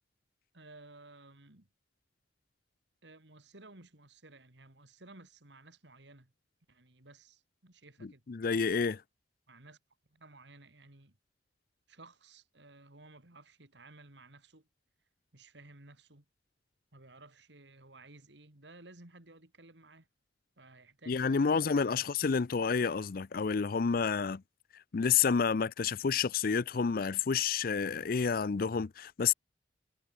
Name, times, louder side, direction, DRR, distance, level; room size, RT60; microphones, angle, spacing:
voice 1, 0.5-1.7 3.0-6.3 6.7-8.2 9.5-9.8 10.1-11.2 11.9-14.7 15.3-16.2 16.9-20.1 20.6-22.1, right 2 dB, 75° right, 3.2 m, -56 dB
voice 2, 8.0-9.0 21.1-24.4 24.9-29.3, left 5 dB, 50° left, 0.5 m, -29 dB
head